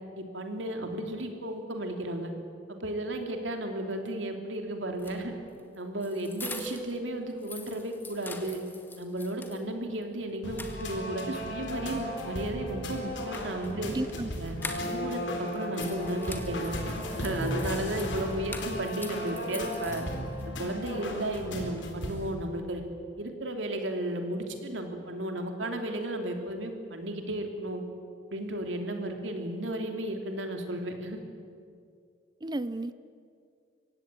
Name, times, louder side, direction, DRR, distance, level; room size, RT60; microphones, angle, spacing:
voice 1, 0.1-2.3 2.7-5.3 5.8-8.6 9.0-13.9 14.4-14.6 14.9-16.7 17.2-20.0 20.6-22.8 23.2-27.8 28.3-31.2, right 1 dB, 85° right, 4 dB, 3.1 m, -34 dB
sound 1, 4.9-7.0 7.3-9.6 10.0-10.1 10.4-11.3 12.9-15.2 15.5-20.4, left 2 dB, 10° left, 1.9 m, -44 dB
sound 2, 10.4-22.3, left 1 dB, 75° left, 4.0 m, -35 dB
voice 2, 13.9-14.3 32.4-32.9, right 2 dB, 25° right, 14 dB, 0.6 m, -32 dB
24.0 x 17.0 x 9.1 m, 2.3 s
head